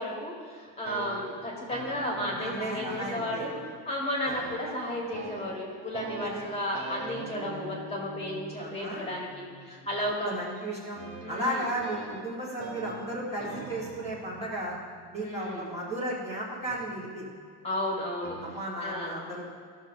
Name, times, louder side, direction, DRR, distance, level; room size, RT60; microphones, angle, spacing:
voice 1, 0.0-3.6 3.8-10.4 11.2-11.7 15.2-15.7 17.6-18.4 18.8-19.2, left 1 dB, 15° left, -3 dB, 1.5 m, -33 dB
sound 1, 0.7-4.0 4.3-15.9 16.7-17.5 18.2-18.6, right 3 dB, 70° right, 1.8 m, -44 dB
voice 2, 2.4-3.4 4.2-4.3 6.2-6.4 8.6-9.1 10.2-11.0 11.3-14.8 15.1-17.3 18.4-19.6, right 1 dB, 15° right, -7 dB, 1.4 m, -34 dB
15.0 x 6.5 x 2.6 m, 2.1 s
cardioid pair, 160°, 41 cm